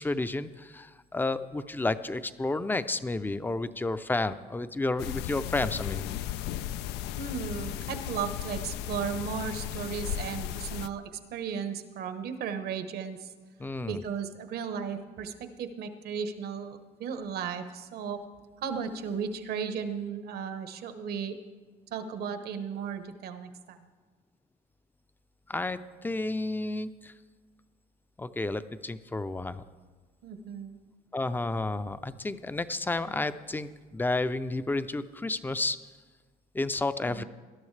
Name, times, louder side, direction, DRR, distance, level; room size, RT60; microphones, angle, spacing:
voice 1, 0.0-6.1 13.6-14.0 25.5-27.1 28.2-29.6 31.1-35.8 36.5-37.2, left 2 dB, 10° left, 12 dB, 0.5 m, -31 dB
sound 1, 5.0-10.9, left 11 dB, 85° left, 0.4 m, -35 dB
voice 2, 7.2-13.3 13.9-18.2 18.6-21.4 21.9-23.9 30.2-30.8 37.0-37.2, right 7 dB, 70° right, 9 dB, 1.1 m, -35 dB
20.0 x 11.5 x 3.3 m, 1.4 s
cardioid pair, 110°, 17 cm